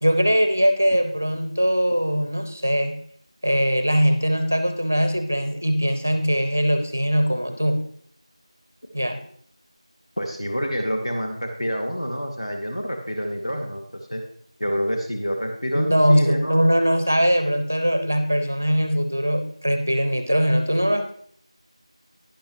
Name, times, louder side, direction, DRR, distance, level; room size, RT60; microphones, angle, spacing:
voice 1, 0.0-3.0 3.4-7.8 8.9-9.2 15.7-21.1, equal, 20° right, 8 dB, 0.5 m, -21 dB
voice 2, 10.2-14.2 14.6-16.6, equal, 60° left, 2 dB, 1.3 m, -27 dB
11.0 x 10.5 x 3.0 m, 0.63 s
figure-of-eight pair, 175°, 3 cm